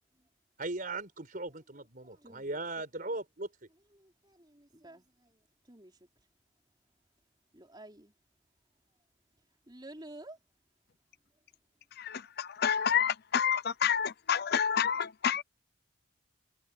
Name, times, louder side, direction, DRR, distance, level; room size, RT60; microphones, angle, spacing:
voice 1, 0.6-3.5, right 2 dB, 40° right, 4.5 m, -38 dB
voice 2, 2.0-2.6 3.0-3.2 3.9-6.1 7.5-8.1 9.7-10.4, right 1 dB, 20° right, 4.3 m, -52 dB
voice 3, 12.0-15.4, left 8 dB, 50° left, 0.5 m, -29 dB
head